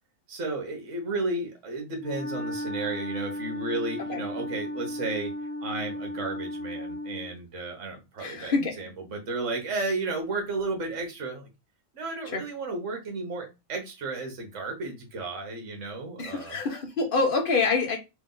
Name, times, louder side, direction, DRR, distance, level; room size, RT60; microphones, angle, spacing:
voice 1, 0.3-5.3 5.6-11.5 11.9-16.6, right 3 dB, 65° right, 3 dB, 1.5 m, -33 dB
Wind instrument woodwind instrument, 2.0-7.4, left 1 dB, 70° left, 1.1 m, -35 dB
voice 2, 8.2-8.7 12.3-12.4 16.2-18.0, left 4 dB, 45° left, 3 dB, 1.2 m, -26 dB
3.4 x 3.0 x 3.8 m, 0.25 s
omnidirectional pair, 1.4 m